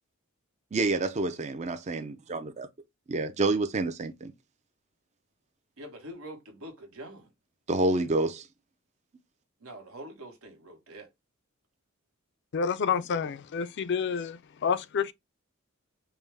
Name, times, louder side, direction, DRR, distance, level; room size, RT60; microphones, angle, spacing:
voice 1, 0.7-2.7 3.1-4.3 7.7-8.5, right 2 dB, 30° right, 0.4 m, -28 dB
voice 2, 5.8-7.3 9.6-11.1, right 1 dB, 80° right, 1.3 m, -45 dB
voice 3, 12.5-15.1, left 6 dB, 55° left, 0.4 m, -29 dB
5.4 x 2.1 x 3.3 m
head